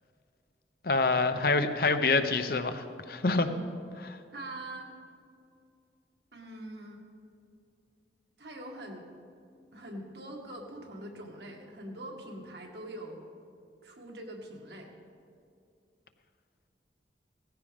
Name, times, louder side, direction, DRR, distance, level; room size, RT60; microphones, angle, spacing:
voice 1, 0.8-3.5 4.0-4.2, left 3 dB, 55° left, 9 dB, 0.8 m, -26 dB
voice 2, 3.3-3.8 4.3-4.9 6.3-7.0 8.4-9.1 9.7-13.2 13.8-14.9, right 1 dB, 65° right, 1 dB, 1.9 m, -43 dB
18.0 x 15.0 x 3.6 m, 2.4 s
head